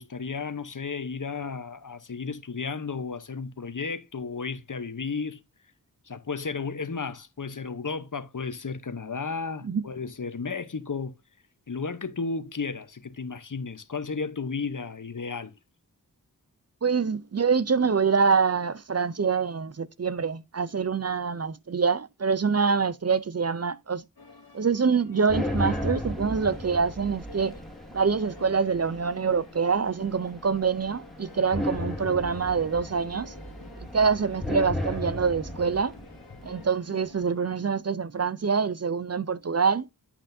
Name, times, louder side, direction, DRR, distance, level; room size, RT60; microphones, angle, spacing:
voice 1, 0.0-5.4 6.1-11.1 11.7-15.5, left 4 dB, 55° left, 0.9 m, -33 dB
voice 2, 16.8-24.0 24.5-27.5 27.9-33.3 33.9-35.9 36.4-39.9, right 5 dB, 45° right, 0.5 m, -25 dB
sound 1, 24.2-37.5, left 3 dB, 75° left, 1.7 m, -50 dB
sound 2, 25.3-36.7, left 1 dB, ahead, 2.3 m, -35 dB
8.6 x 7.9 x 2.6 m
wide cardioid pair, 45°, 37 cm